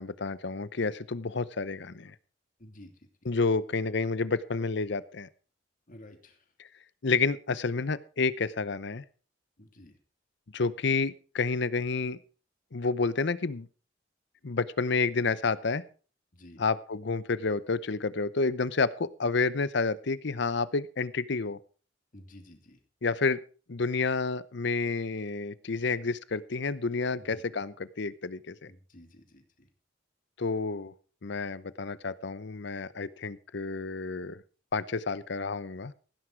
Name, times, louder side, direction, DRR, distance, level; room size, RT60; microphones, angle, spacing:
voice 1, 0.0-2.1 3.3-5.3 7.0-9.0 10.5-12.2 12.7-13.7 14.4-15.8 16.6-21.6 23.0-23.4 23.7-28.5 30.4-30.9 31.2-34.4 34.7-35.9, left 4 dB, 65° left, 17 dB, 0.8 m, -30 dB
voice 2, 2.6-3.1 5.9-6.4 9.6-10.0 16.3-16.6 22.1-22.8 27.2-27.4 28.7-29.7, left 1 dB, 45° left, 5 dB, 2.8 m, -52 dB
16.5 x 9.9 x 4.6 m, 0.38 s
head